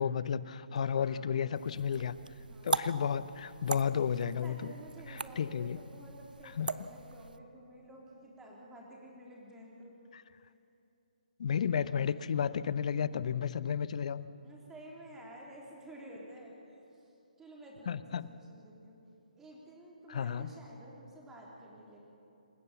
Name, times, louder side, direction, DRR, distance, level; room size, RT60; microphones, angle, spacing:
voice 1, 0.0-2.1 2.6-4.7 5.1-5.8 6.6-6.7 10.1-10.2 11.4-14.3 17.9-18.3 20.1-20.5, left 7 dB, 50° left, 16 dB, 0.7 m, -32 dB
voice 2, 0.7-1.3 2.4-2.8 4.4-9.9 14.4-17.1 17.4-19.0 19.4-22.0, right 1 dB, 10° right, -3 dB, 3.8 m, -52 dB
sound 1, 1.5-7.4, right 4 dB, 75° right, 0.8 m, -40 dB
27.0 x 15.0 x 7.1 m, 2.8 s
figure-of-eight pair, 145°, 5 cm